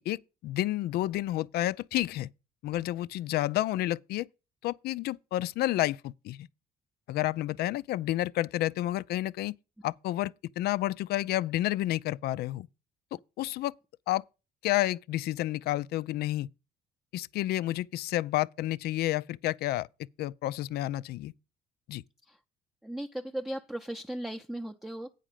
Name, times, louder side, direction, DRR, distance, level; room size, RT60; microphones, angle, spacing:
voice 1, 0.1-2.3 2.6-4.3 4.6-6.5 7.1-9.5 9.8-12.7 13.1-13.7 14.1-14.2 14.6-16.5 17.1-19.9 20.2-21.3 21.9-22.0, left 15 dB, 70° left, 0.4 m, -30 dB
voice 2, 22.8-25.1, right 1 dB, 5° right, 0.6 m, -37 dB
9.1 x 5.0 x 7.3 m
cardioid pair, 110°, 17 cm